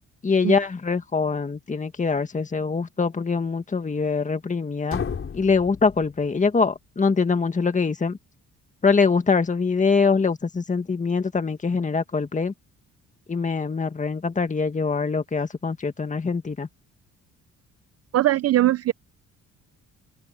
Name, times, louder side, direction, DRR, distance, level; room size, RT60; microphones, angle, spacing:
voice 1, 0.2-5.0 5.3-8.2 8.8-12.5 13.3-16.7, left 4 dB, 25° left, 1.8 m, -23 dB
sound 1, 4.9-6.8, left 6 dB, 45° left, 4.1 m, -34 dB
voice 2, 18.1-18.9, right 14 dB, 55° right, 0.5 m, -20 dB
open air
cardioid pair, 90°, 30 cm